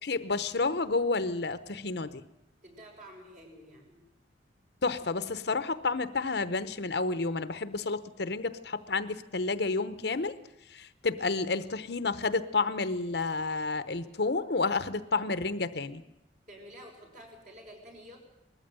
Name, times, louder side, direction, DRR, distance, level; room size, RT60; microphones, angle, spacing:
voice 1, 0.0-2.2 4.8-10.3 10.7-16.0, left 3 dB, 65° left, 12 dB, 0.9 m, -30 dB
voice 2, 2.6-4.0 16.5-18.2, equal, 50° right, 0 dB, 6.2 m, -50 dB
20.0 x 14.5 x 9.0 m, 0.86 s
head